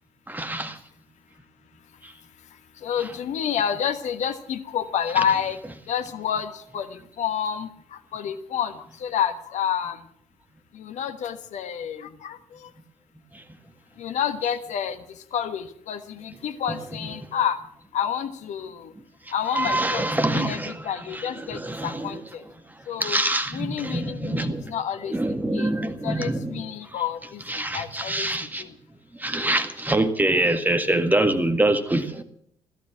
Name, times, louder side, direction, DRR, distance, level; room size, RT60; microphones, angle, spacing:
voice 1, 0.3-0.8 2.0-2.1 3.0-3.1 13.3-13.4 16.7-16.8 19.5-22.2 23.0-24.7 25.1-27.0 27.5-28.6 29.2-32.2, right 1 dB, 10° right, 1.8 m, -25 dB
voice 2, 2.8-5.6 5.9-7.7 8.1-8.7 9.0-10.0 10.8-12.4 14.0-15.0 15.3-17.6 17.9-18.9 19.3-20.0 20.3-22.4 22.9-23.2 23.5-25.1 25.5-25.7 26.0-28.3, left 8 dB, 50° left, 1.3 m, -29 dB
17.0 x 14.0 x 6.0 m
figure-of-eight pair, 50°, 15 cm